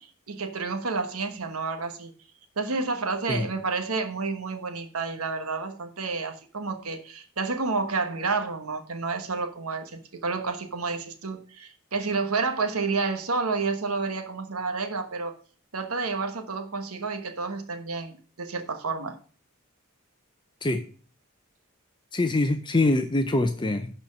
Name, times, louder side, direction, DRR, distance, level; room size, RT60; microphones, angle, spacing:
voice 1, 0.0-2.1 2.6-15.4 15.7-19.2, right 4 dB, 85° right, 6 dB, 1.2 m, -30 dB
voice 2, 22.1-23.9, left 2 dB, 20° left, 7 dB, 0.6 m, -24 dB
11.0 x 4.4 x 6.3 m, 0.41 s
head